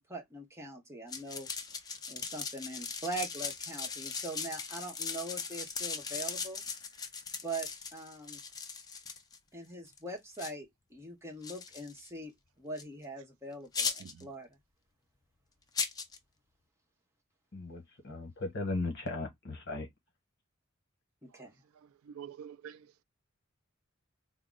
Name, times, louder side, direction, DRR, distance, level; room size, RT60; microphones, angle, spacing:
voice 1, 0.0-1.5 2.1-6.6 7.4-8.4 9.5-12.3 12.6-14.5 21.2-21.5, right 2 dB, 15° right, 0.9 m, -42 dB
sound 1, 1.1-9.4 9.9-10.0 10.3-10.5 11.4-12.1 12.8-12.9 13.7-14.2 15.7-16.2, left 5 dB, 20° left, 0.4 m, -38 dB
voice 2, 17.5-19.9, left 2 dB, 55° left, 1.1 m, -37 dB
voice 3, 22.0-23.0, right 8 dB, 90° right, 0.4 m, -47 dB
3.7 x 2.0 x 3.7 m
head